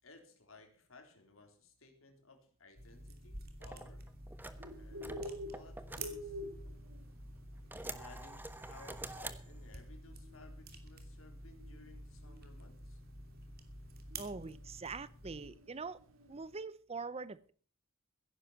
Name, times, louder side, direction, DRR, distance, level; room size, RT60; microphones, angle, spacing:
voice 1, 0.0-4.1 4.8-6.4 7.6-13.0, left 3 dB, 75° left, 4 dB, 3.9 m, -59 dB
sound 1, 2.8-15.5, right 2 dB, 50° right, 2.7 m, -50 dB
sound 2, 3.6-6.9 7.3-9.9, right 2 dB, 10° right, 1.1 m, -48 dB
Bird, 4.5-16.6, left 1 dB, 80° right, 3.5 m, -50 dB
voice 2, 14.2-16.0 16.3-17.5, right 4 dB, 30° right, 17 dB, 0.6 m, -43 dB
15.5 x 11.0 x 5.8 m, 0.43 s
head